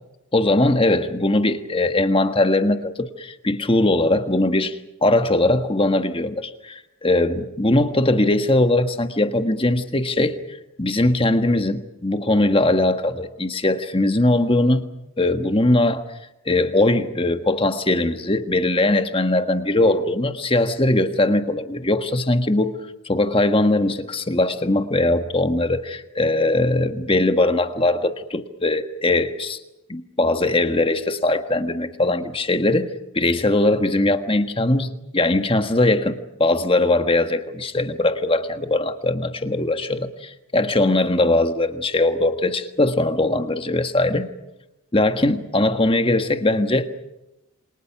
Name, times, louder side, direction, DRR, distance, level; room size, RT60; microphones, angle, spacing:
voice 1, 0.3-14.9 15.2-16.0 16.4-22.8 23.0-29.6 29.9-44.3 44.9-46.9, left 2 dB, 25° left, 8 dB, 1.5 m, -20 dB
28.5 x 26.0 x 6.0 m, 0.93 s
head